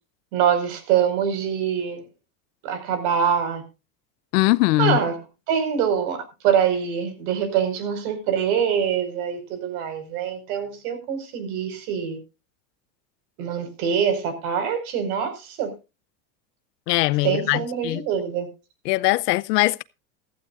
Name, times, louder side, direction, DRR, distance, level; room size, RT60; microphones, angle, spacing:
voice 1, 0.3-2.0 2.6-3.6 4.8-5.2 5.5-12.2 13.4-15.7 17.2-18.5, right 8 dB, 70° right, 5.3 m, -24 dB
voice 2, 4.3-5.0 16.9-18.0 18.9-19.8, left 21 dB, 80° left, 0.8 m, -21 dB
15.5 x 15.0 x 2.5 m
supercardioid pair, 125°, 47 cm